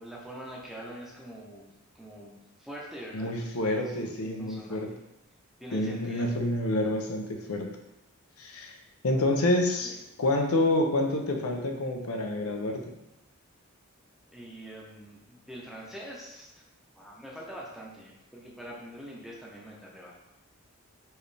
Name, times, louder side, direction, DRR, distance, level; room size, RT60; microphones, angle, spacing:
voice 1, 0.0-1.7 1.9-3.5 3.8-3.9 4.2-4.8 5.6-6.3 9.7-10.0 14.3-16.6 17.0-20.1, equal, ahead, -4 dB, 0.8 m, -44 dB
voice 2, 3.1-4.9 5.7-7.7 8.4-8.8 9.0-9.9 10.2-12.8, left 1 dB, 85° left, 3 dB, 0.6 m, -28 dB
4.5 x 3.2 x 3.3 m, 0.89 s
head